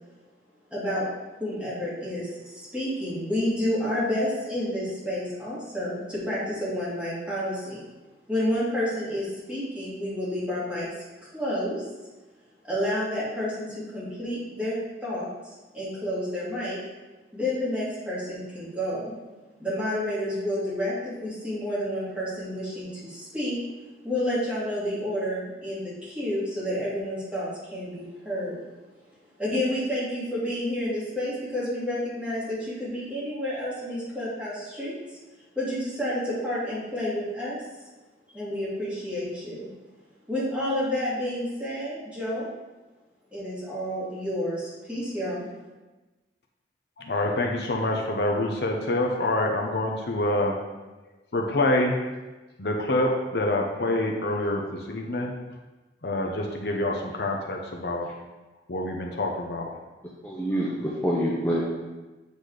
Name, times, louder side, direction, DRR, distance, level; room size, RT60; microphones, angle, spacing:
voice 1, 0.7-1.1 1.4-7.8 8.3-10.9 11.3-11.8 12.6-13.7 13.9-15.3 15.7-16.8 17.3-19.1 19.6-23.6 24.0-28.6 29.4-34.9 35.6-37.6 38.3-39.7 40.3-42.5 43.3-45.5, left 1 dB, 5° right, -10 dB, 2.5 m, -30 dB
voice 2, 47.0-50.6 51.3-51.9 52.6-55.3 56.0-58.1 58.7-59.7, left 1 dB, 60° left, 1 dB, 0.8 m, -26 dB
voice 3, 60.2-61.6, equal, 10° left, -5 dB, 0.8 m, -26 dB
8.2 x 4.1 x 4.9 m, 1.2 s
head